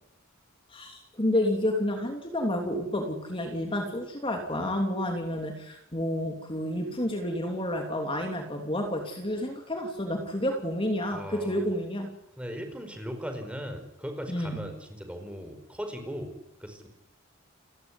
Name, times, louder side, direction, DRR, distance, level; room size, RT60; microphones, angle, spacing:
voice 1, 0.7-12.1 14.3-14.6, left 1 dB, 25° left, 3 dB, 3.1 m, -30 dB
voice 2, 11.1-11.6 12.4-16.3 16.6-16.9, equal, 5° right, 5 dB, 5.0 m, -38 dB
30.0 x 16.0 x 9.8 m, 0.84 s
head